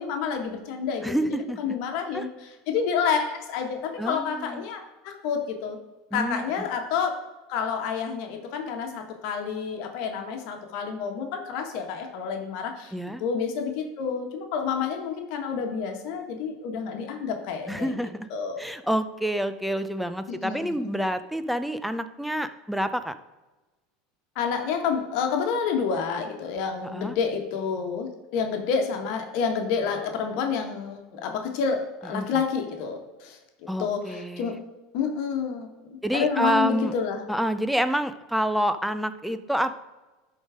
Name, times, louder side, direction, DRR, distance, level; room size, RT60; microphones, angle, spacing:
voice 1, 0.0-1.1 1.6-2.3 2.7-5.8 6.1-7.2 7.5-12.9 13.2-18.0 18.3-18.6 20.3-20.8 24.3-33.4 33.8-34.6 34.9-37.2, left 6 dB, 60° left, 3 dB, 1.3 m, -29 dB
voice 2, 1.0-1.8 2.1-2.3 4.0-4.7 6.1-6.4 12.9-13.2 17.7-18.3 18.6-23.2 26.8-27.2 32.1-32.3 33.7-34.6 36.0-36.9 37.3-39.8, right 1 dB, ahead, 11 dB, 0.5 m, -28 dB
11.5 x 4.0 x 4.9 m, 1.1 s
supercardioid pair, 140°, 0 cm